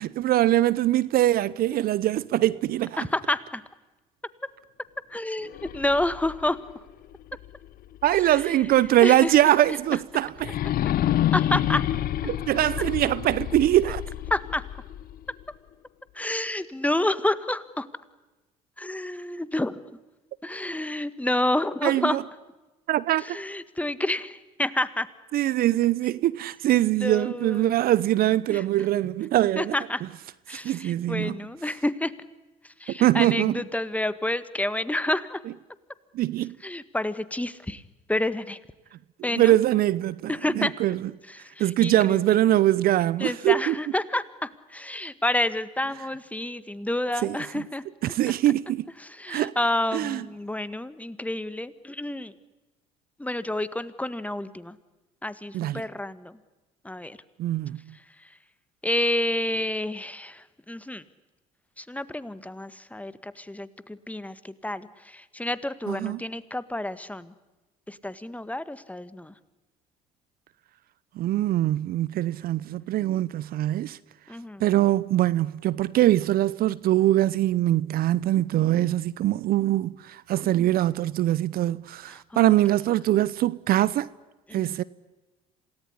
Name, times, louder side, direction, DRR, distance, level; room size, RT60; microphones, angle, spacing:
voice 1, 0.0-3.0 8.0-10.6 12.3-14.0 21.8-22.2 22.9-23.4 25.3-29.7 30.5-31.4 33.0-33.6 36.1-36.6 39.2-41.1 41.6-43.7 47.2-47.6 48.0-48.8 49.3-49.6 49.9-50.2 55.5-55.8 57.4-57.8 65.9-66.2 71.2-74.0 74.6-84.1 84.5-84.8, right 14 dB, 55° right, 0.8 m, -23 dB
voice 2, 3.0-3.6 5.1-6.6 8.2-9.5 11.3-11.8 14.3-14.6 16.1-17.9 18.8-20.0 20.4-22.2 23.2-25.1 26.9-27.8 28.5-28.6 29.5-30.0 30.5-32.1 32.8-35.4 36.6-37.8 38.1-38.6 39.2-39.6 40.3-40.7 41.3-42.2 43.2-47.8 49.0-52.3 53.2-54.7 55.2-56.4 56.8-57.2 58.8-61.0 61.8-67.3 67.9-69.3 74.3-74.6 80.4-80.7 82.1-82.5 84.5-84.8, left 1 dB, 10° left, 1.7 m, -29 dB
sound 1, 5.5-8.4 8.9-9.0 10.4-15.4, left 12 dB, 55° left, 1.1 m, -29 dB
27.5 x 18.5 x 9.8 m
hypercardioid pair, 60°, 18 cm